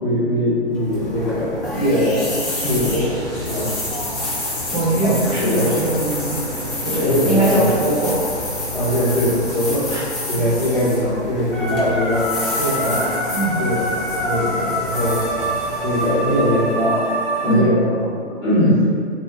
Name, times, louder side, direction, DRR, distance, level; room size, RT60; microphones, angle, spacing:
voice 1, 0.0-3.1 3.4-3.7 5.0-5.1 5.4-5.7 6.9-7.7 8.7-9.9 10.3-12.3 12.5-13.0 13.6-15.2 15.8-17.0 17.4-18.1 18.4-18.9, left 1 dB, 75° left, -11 dB, 1.2 m, -21 dB
sound 1, 0.7-16.9, left 1 dB, 50° left, 1.0 m, -29 dB
sound 2, 2.5-10.0, equal, 90° right, 0.5 m, -35 dB
voice 2, 4.7-6.4 6.8-8.2 9.9-10.0 13.3-13.6 17.4-17.7 18.6-18.8, right 1 dB, 20° right, -10 dB, 0.7 m, -21 dB
sound 3, 11.5-17.6, right 1 dB, 20° left, 0.7 m, -25 dB
2.6 x 2.2 x 2.5 m, 2.2 s
figure-of-eight pair, 120°, 34 cm